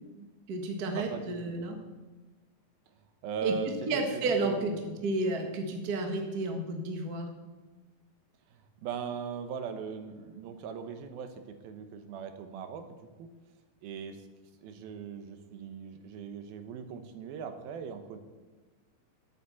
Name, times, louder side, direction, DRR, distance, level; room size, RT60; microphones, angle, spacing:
voice 1, 0.1-1.7 3.4-3.5 3.9-4.7 5.0-7.3, right 3 dB, 50° right, 3 dB, 1.1 m, -31 dB
voice 2, 0.9-1.6 3.2-4.9 8.5-12.9 13.2-13.3 13.8-14.2 14.6-18.2, right 6 dB, 80° right, 8 dB, 2.8 m, -39 dB
11.5 x 8.3 x 7.0 m, 1.2 s
omnidirectional pair, 4.3 m